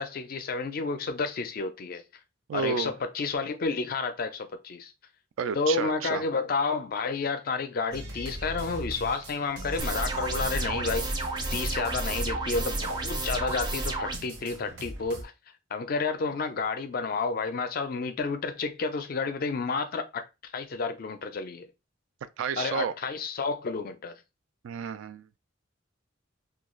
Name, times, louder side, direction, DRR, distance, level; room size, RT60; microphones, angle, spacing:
voice 1, 0.0-2.0 2.5-4.9 5.5-11.2 11.5-15.3 15.7-20.2 20.5-21.7 22.6-24.1, left 4 dB, 50° left, 0.4 m, -30 dB
voice 2, 2.5-2.9 5.4-6.2 22.4-22.9 24.6-25.3, right 6 dB, 85° right, 0.3 m, -31 dB
sound 1, 7.9-15.2, right 1 dB, 65° right, 0.8 m, -40 dB
sound 2, 9.8-14.2, right 2 dB, 20° right, 0.4 m, -31 dB
2.3 x 2.3 x 3.1 m
head